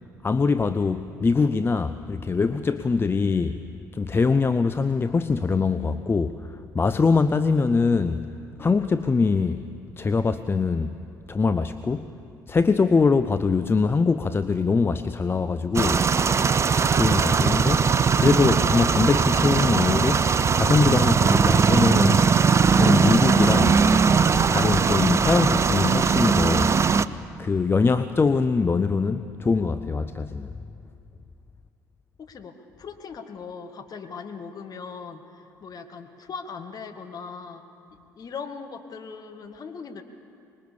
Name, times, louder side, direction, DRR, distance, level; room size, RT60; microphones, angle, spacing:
voice 1, 0.2-3.6 3.9-8.3 8.6-10.9 11.3-12.1 12.5-16.0 16.9-17.8 18.2-22.3 22.7-23.8 24.5-26.7 27.4-30.5, left 4 dB, 25° left, 11 dB, 0.7 m, -23 dB
sound 1, 15.7-27.0, right 5 dB, 30° right, 0.6 m, -20 dB
voice 2, 32.2-37.6 38.2-40.0, left 5 dB, 40° left, 5 dB, 2.0 m, -39 dB
25.5 x 21.0 x 7.1 m, 2.6 s
figure-of-eight pair, 55°, 10 cm